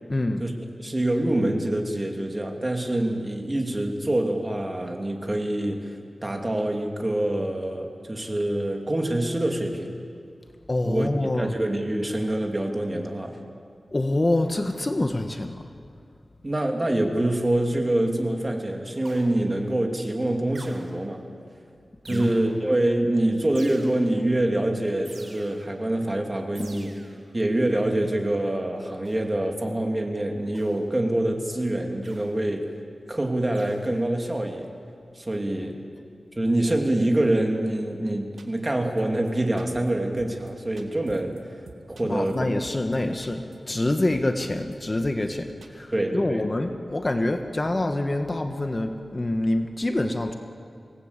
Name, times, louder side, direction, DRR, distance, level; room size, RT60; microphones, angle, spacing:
voice 1, 0.1-0.4 10.7-11.5 13.9-15.7 22.1-22.3 42.0-50.3, left 1 dB, 30° left, 6 dB, 1.4 m, -26 dB
voice 2, 0.8-9.9 10.8-13.4 16.4-21.2 22.1-26.9 27.3-32.7 33.1-34.7 35.1-35.8 36.4-42.5 43.0-43.1 45.9-46.5, right 1 dB, 25° right, 2 dB, 2.8 m, -25 dB
sound 1, 19.0-19.6 20.5-21.2 22.0-22.7 23.5-24.3 25.0-25.8 26.5-27.3 29.0-29.4 30.5-31.0 32.0-32.5 33.5-34.0, right 2 dB, 55° right, 3.9 m, -48 dB
sound 2, 38.4-38.7 39.0-39.1 39.3-39.4 39.6-39.9 40.2-40.5 40.8-41.4 41.7-43.0 43.2-43.6 43.8-43.9 44.1-44.7 45.0-45.3 45.6-45.7, right 4 dB, 90° right, 2.2 m, -46 dB
25.5 x 18.5 x 8.3 m, 2.3 s
wide cardioid pair, 80°, 0 cm